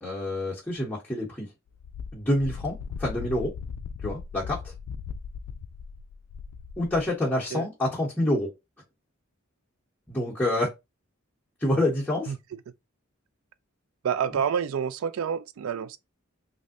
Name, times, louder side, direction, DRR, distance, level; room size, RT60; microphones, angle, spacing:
voice 1, 0.0-1.5 2.1-3.5 4.0-4.7 6.8-8.5 10.1-10.7 11.6-12.3, left 1 dB, 10° left, 0.8 m, -27 dB
Wind, 1.8-7.1, left 6 dB, 90° left, 0.3 m, -38 dB
voice 2, 14.0-16.0, right 7 dB, 80° right, 0.3 m, -28 dB
3.2 x 2.6 x 2.5 m
head